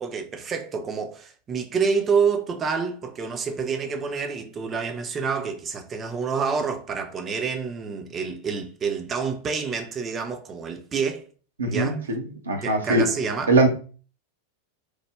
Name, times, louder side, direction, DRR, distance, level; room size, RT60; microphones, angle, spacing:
voice 1, 0.0-11.3 11.7-12.0 12.6-13.5, right 5 dB, 25° right, 0.5 m, -28 dB
voice 2, 11.6-13.1 13.5-13.7, right 2 dB, 70° right, 0.7 m, -21 dB
3.2 x 2.1 x 3.2 m
figure-of-eight pair, 90°, 0 cm